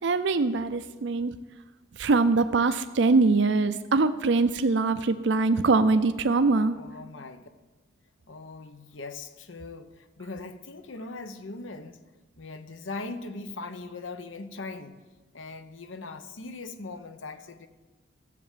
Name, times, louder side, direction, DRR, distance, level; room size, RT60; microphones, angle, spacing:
voice 1, 0.0-1.4 2.0-6.8, right 3 dB, 70° right, 11 dB, 0.5 m, -23 dB
voice 2, 6.7-7.5 8.3-12.0 12.4-15.0 15.3-17.7, left 3 dB, 90° left, 10 dB, 0.9 m, -40 dB
13.5 x 7.6 x 7.4 m, 1.2 s
head